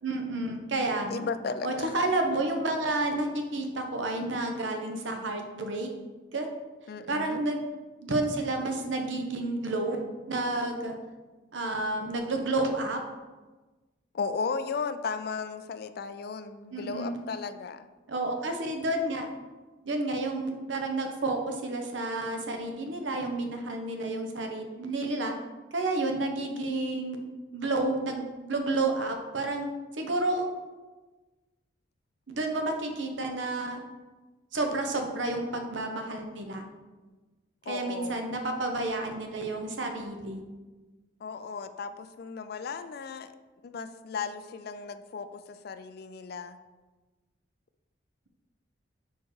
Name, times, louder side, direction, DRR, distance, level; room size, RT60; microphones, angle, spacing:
voice 1, 0.0-1.3 1.6-5.9 6.3-6.5 7.1-7.6 8.0-10.0 10.3-11.0 11.5-13.0 16.7-17.2 18.1-19.3 19.8-25.3 25.7-27.2 27.5-29.7 29.9-30.5 32.3-33.8 34.5-36.7 37.7-40.4, right 2 dB, 75° right, 4 dB, 0.8 m, -30 dB
voice 2, 1.1-1.9 6.9-7.4 14.1-17.9 37.7-38.2 41.2-43.3 43.6-46.6, left 5 dB, 55° left, 10 dB, 0.3 m, -35 dB
4.7 x 4.4 x 4.7 m, 1.2 s
head